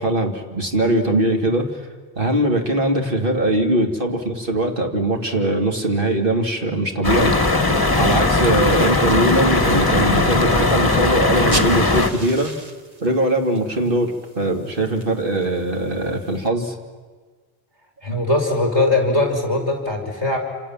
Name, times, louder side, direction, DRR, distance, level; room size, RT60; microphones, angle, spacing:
voice 1, 0.0-1.9 2.2-7.3 8.0-12.5 13.0-16.7 18.1-18.2, right 1 dB, 60° right, 3 dB, 2.8 m, -21 dB
sound 1, 7.0-12.1, left 2 dB, 20° left, 1.3 m, -18 dB
sound 2, 11.3-16.5, right 2 dB, 40° right, 1.6 m, -36 dB
voice 2, 18.0-20.4, left 2 dB, 25° right, 3 dB, 5.6 m, -20 dB
28.5 x 27.0 x 7.4 m, 1.5 s
omnidirectional pair, 1.0 m